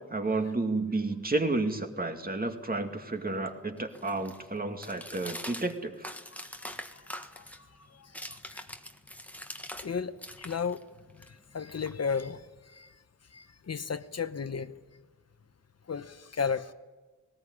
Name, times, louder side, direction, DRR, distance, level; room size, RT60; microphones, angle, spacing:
voice 1, 0.0-6.1, right 2 dB, 30° right, 5 dB, 2.2 m, -31 dB
sound 1, 2.5-9.9 10.2-12.4, left 1 dB, 5° left, 1.5 m, -45 dB
voice 2, 6.6-7.0 7.4-8.6 9.8-10.8 11.3-12.9 13.3-14.7 15.9-16.7, left 6 dB, 55° left, 11 dB, 0.9 m, -35 dB
19.0 x 19.0 x 9.8 m, 1.3 s
wide cardioid pair, 100°, 31 cm